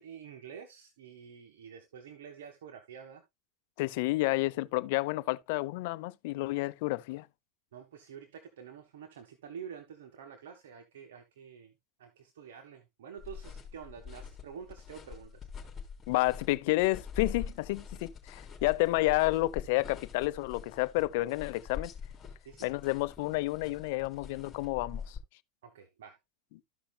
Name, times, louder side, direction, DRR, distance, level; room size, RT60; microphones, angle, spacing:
voice 1, 0.0-3.2 7.7-11.7 12.0-15.3 22.4-22.7 25.6-26.2, right 7 dB, 85° right, 1.4 m, -48 dB
voice 2, 3.8-7.3 16.1-21.9 22.6-25.2, left 20 dB, 70° left, 0.6 m, -30 dB
sound 1, 13.2-25.2, left 6 dB, 20° left, 3.6 m, -44 dB
14.0 x 5.8 x 2.2 m
supercardioid pair, 125°, 0 cm